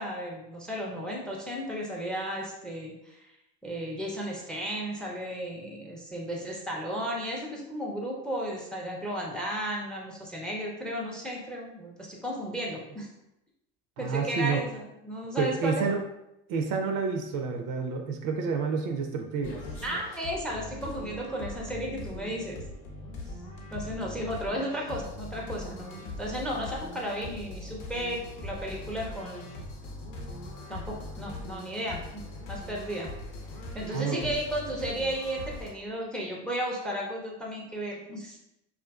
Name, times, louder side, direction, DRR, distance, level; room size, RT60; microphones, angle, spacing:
voice 1, 0.0-3.3 3.6-13.1 14.0-15.8 19.8-22.6 23.7-29.5 30.7-33.1 33.7-38.4, equal, ahead, -1 dB, 0.5 m, -34 dB
voice 2, 14.0-14.6 15.4-16.0 16.5-19.6 33.9-34.3, right 5 dB, 55° right, 3 dB, 0.5 m, -29 dB
sound 1, 19.4-35.7, left 2 dB, 80° left, 0.8 m, -41 dB
2.5 x 2.4 x 2.3 m, 0.86 s
supercardioid pair, 85°, 38 cm